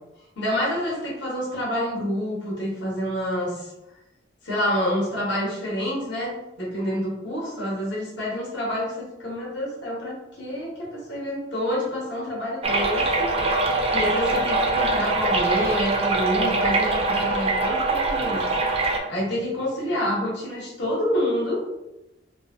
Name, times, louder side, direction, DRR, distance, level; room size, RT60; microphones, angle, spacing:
voice 1, 0.4-3.7 4.4-13.3 13.9-18.4 19.1-21.6, equal, 60° left, -4 dB, 0.8 m, -28 dB
sound 1, 12.6-19.0, right 3 dB, 30° right, 0.3 m, -23 dB
2.7 x 2.5 x 2.5 m, 0.92 s
head